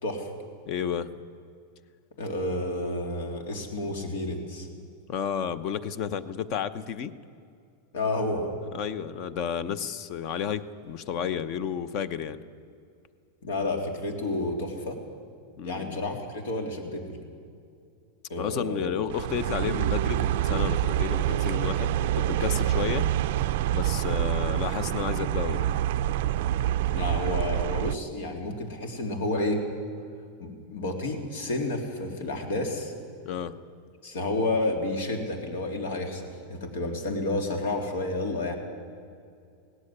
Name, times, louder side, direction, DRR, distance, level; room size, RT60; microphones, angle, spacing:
voice 1, 0.7-1.1 5.1-7.1 8.7-12.4 15.6-16.0 18.4-23.1 23.7-25.7 33.2-33.5, left 8 dB, 40° left, 15 dB, 0.8 m, -32 dB
voice 2, 2.2-4.7 7.9-8.5 13.4-15.0 15.6-17.2 18.3-19.0 26.9-29.6 30.4-32.9 34.0-38.6, left 2 dB, 80° left, 3 dB, 3.5 m, -30 dB
sound 1, 19.1-27.9, right 12 dB, 60° right, 0.4 m, -26 dB
18.0 x 14.5 x 10.0 m, 2.4 s
supercardioid pair, 165°, 0 cm